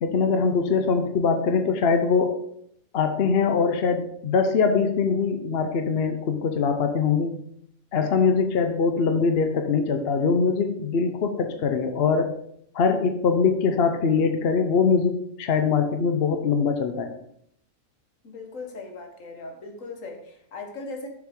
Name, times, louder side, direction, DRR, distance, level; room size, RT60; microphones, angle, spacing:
voice 1, 0.0-2.4 2.9-7.3 7.9-12.3 12.7-17.1, left 5 dB, 55° left, 6 dB, 0.9 m, -22 dB
voice 2, 18.2-21.1, left 3 dB, 75° left, 3 dB, 1.6 m, -38 dB
7.0 x 6.3 x 3.7 m, 0.71 s
omnidirectional pair, 1.4 m